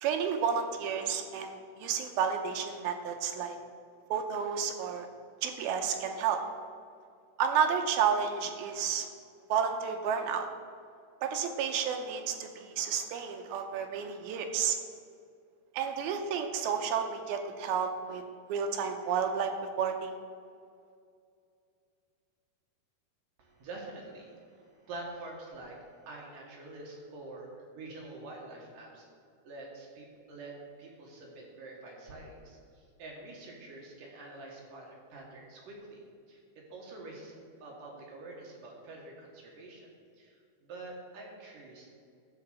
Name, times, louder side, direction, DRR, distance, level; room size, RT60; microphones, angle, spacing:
voice 1, 0.0-3.6 4.1-5.1 5.4-6.4 7.4-9.1 9.5-10.5 11.2-14.8 15.7-18.2 18.5-19.5 19.8-20.2, right 7 dB, 80° right, 5 dB, 2.5 m, -31 dB
voice 2, 23.4-29.1 29.4-36.0 36.3-41.9, right 2 dB, 60° right, -2 dB, 2.9 m, -47 dB
12.5 x 4.8 x 7.9 m, 2.3 s
omnidirectional pair, 4.6 m